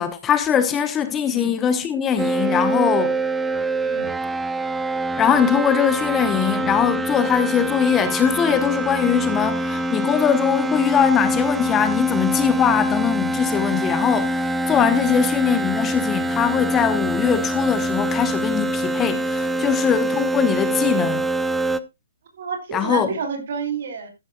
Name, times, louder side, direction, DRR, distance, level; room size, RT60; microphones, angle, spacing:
voice 1, 0.0-3.2 5.2-21.2 22.7-23.1, left 8 dB, 15° left, 1.0 m, -21 dB
sound 1, 2.2-21.8, right 1 dB, 5° right, 0.6 m, -24 dB
voice 2, 22.3-24.1, right 6 dB, 55° right, 4.3 m, -30 dB
13.5 x 11.0 x 2.3 m
hypercardioid pair, 140°, 0 cm